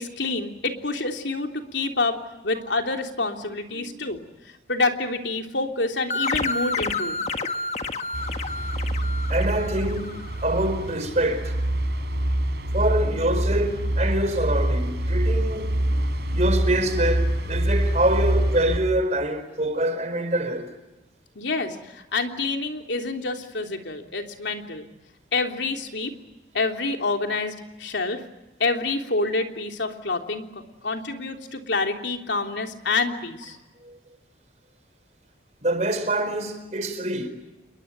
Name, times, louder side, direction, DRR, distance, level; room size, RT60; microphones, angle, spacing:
voice 1, 0.0-2.2 2.4-4.2 4.7-7.2 21.3-24.9 25.3-26.1 26.5-28.2 28.6-33.6, left 3 dB, 85° left, 3.3 m, -27 dB
sound 1, 6.1-10.4, left 3 dB, 40° left, 1.6 m, -29 dB
sound 2, 8.1-18.8, right 1 dB, 70° right, 4.4 m, -25 dB
voice 2, 9.3-11.6 12.7-20.7 33.8-34.0 35.6-37.3, right 1 dB, 40° right, 4.7 m, -25 dB
29.0 x 22.0 x 9.0 m
head